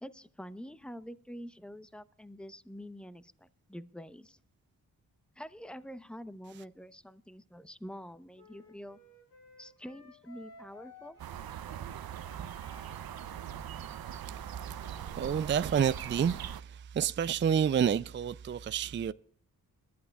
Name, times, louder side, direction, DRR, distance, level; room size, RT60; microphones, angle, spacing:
voice 1, 0.0-4.4 5.4-9.0 9.6-11.2, equal, 5° left, 0.8 m, -46 dB
Wind instrument woodwind instrument, 8.3-15.9, left 2 dB, 85° left, 4.6 m, -58 dB
sound 1, 11.2-16.6, right 9 dB, 70° right, 0.7 m, -41 dB
voice 2, 15.1-16.4 16.7-19.1, right 8 dB, 30° right, 0.4 m, -29 dB
21.5 x 12.0 x 2.3 m
cardioid pair, 45°, 38 cm